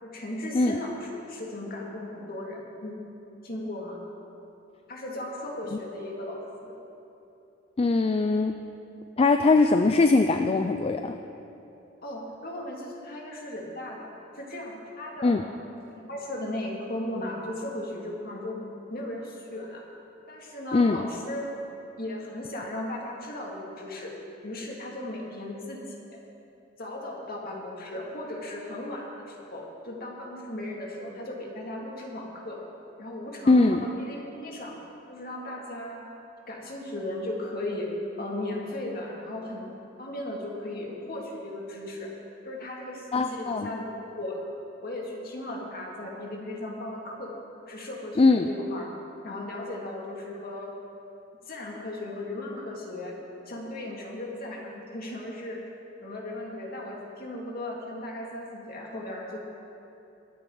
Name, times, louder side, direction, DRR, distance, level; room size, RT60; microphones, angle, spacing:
voice 1, 0.0-3.0 3.4-4.0 4.9-6.7 12.0-14.1 14.4-15.4 15.9-19.8 20.3-21.5 22.0-24.1 24.4-26.2 26.8-32.6 33.0-34.8 35.1-36.0 36.5-39.7 40.0-42.1 42.4-44.5 44.8-47.3 47.6-48.9 49.2-50.8 51.5-53.1 53.5-55.6 56.0-59.4, left 1 dB, 50° left, -2 dB, 2.3 m, -36 dB
voice 2, 7.8-8.6 9.2-11.2 15.2-15.4 20.7-21.0 33.5-33.9 43.1-43.7 48.2-48.5, left 3 dB, 30° left, 7 dB, 0.4 m, -21 dB
22.0 x 9.4 x 3.9 m, 2.9 s
head